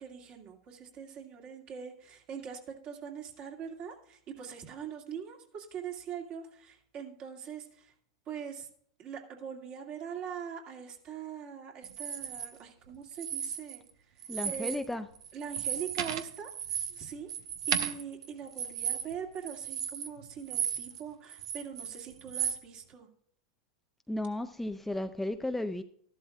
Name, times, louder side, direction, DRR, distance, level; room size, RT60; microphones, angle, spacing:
voice 1, 0.0-7.9 8.3-8.7 9.0-14.8 15.3-17.3 17.7-23.1, right 7 dB, 40° right, 2.3 m, -42 dB
sound 1, 11.8-12.5 13.1-13.9 14.2-14.9 15.2-21.0 21.3-22.6, right 8 dB, 70° right, 1.0 m, -35 dB
voice 2, 14.3-15.1 24.1-25.8, left 1 dB, 5° left, 0.5 m, -34 dB
13.5 x 11.5 x 2.4 m
hypercardioid pair, 100°, 3 cm